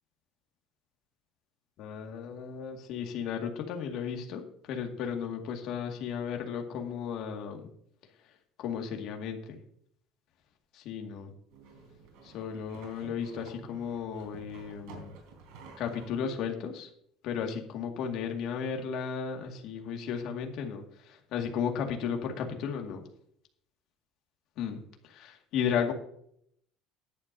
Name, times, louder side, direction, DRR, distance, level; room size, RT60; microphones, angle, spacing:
voice 1, 1.8-7.7 8.6-9.6 10.7-11.3 12.2-15.1 15.8-16.9 17.2-23.0 24.6-25.9, left 7 dB, 55° left, 2 dB, 2.2 m, -34 dB
sound 1, 11.5-16.1, right 4 dB, 85° right, 3.6 m, -51 dB
14.5 x 11.0 x 2.8 m, 0.68 s
cardioid pair, 160°, 0 cm